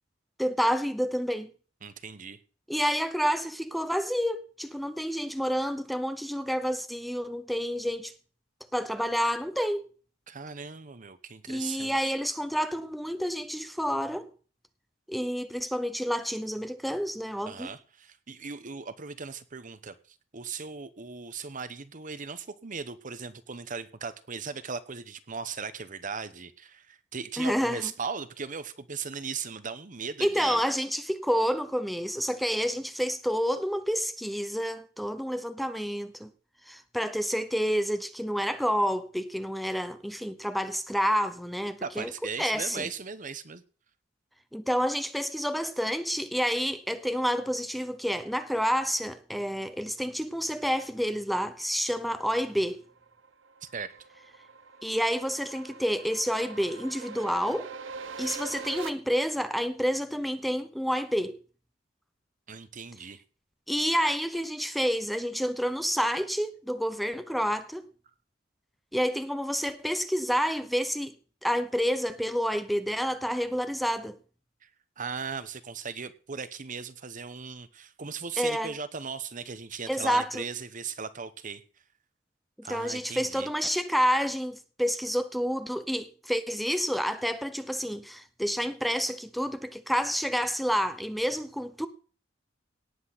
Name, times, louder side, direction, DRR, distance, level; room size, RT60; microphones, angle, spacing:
voice 1, 0.4-1.5 2.7-8.1 8.7-9.8 11.5-14.3 15.1-17.7 27.4-27.9 30.2-36.3 36.7-42.1 42.4-42.9 44.5-52.8 54.8-57.7 58.2-61.4 63.7-67.9 68.9-71.1 71.4-74.2 78.4-78.7 79.9-80.4 82.6-91.9, equal, ahead, 0.7 m, -29 dB
voice 2, 1.8-2.4 10.3-12.1 17.5-30.6 41.8-43.6 53.6-54.0 62.5-63.2 74.6-74.7 75.0-81.6 82.6-83.5, right 5 dB, 45° right, 1.0 m, -38 dB
sound 1, 52.5-58.9, right 4 dB, 90° right, 1.0 m, -43 dB
18.0 x 8.0 x 4.1 m
head